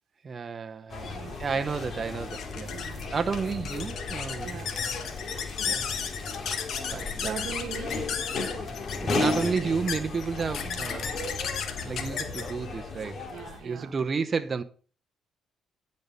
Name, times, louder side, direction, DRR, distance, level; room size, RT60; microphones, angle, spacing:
voice 1, 0.2-2.7 3.1-4.6 5.6-6.0 6.9-7.4 9.0-11.2 11.8-13.2 13.6-14.6, right 5 dB, 40° right, 0.8 m, -31 dB
sound 1, 0.9-13.6, left 3 dB, 50° left, 2.4 m, -35 dB
voice 2, 1.0-1.4 2.7-3.2 4.4-4.7 7.2-8.0 10.6-10.9 13.3-13.9, right 8 dB, 80° right, 1.1 m, -40 dB
sound 2, 1.8-14.1, left 7 dB, 70° left, 1.4 m, -35 dB
10.0 x 5.3 x 5.4 m
cardioid pair, 90°, 0 cm